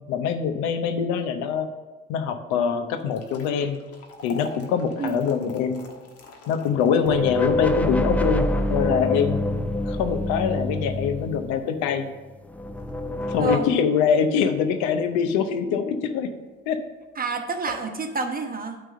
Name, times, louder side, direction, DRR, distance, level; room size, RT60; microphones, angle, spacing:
voice 1, 0.1-1.7 2.1-3.8 4.2-5.8 6.5-9.4 9.9-12.1 13.3-16.3 16.7-16.8, left 7 dB, 75° left, 9 dB, 0.7 m, -24 dB
sound 1, 2.9-15.2 15.6-15.7 16.4-16.6 16.9-17.0 17.5-18.0, left 2 dB, 55° left, 1.3 m, -47 dB
sound 2, 7.0-12.0 12.5-13.6, left 1 dB, 5° left, 0.5 m, -26 dB
voice 2, 17.2-18.8, right 4 dB, 30° right, 5 dB, 1.1 m, -29 dB
8.9 x 3.4 x 6.6 m, 1.3 s
hypercardioid pair, 65°, 29 cm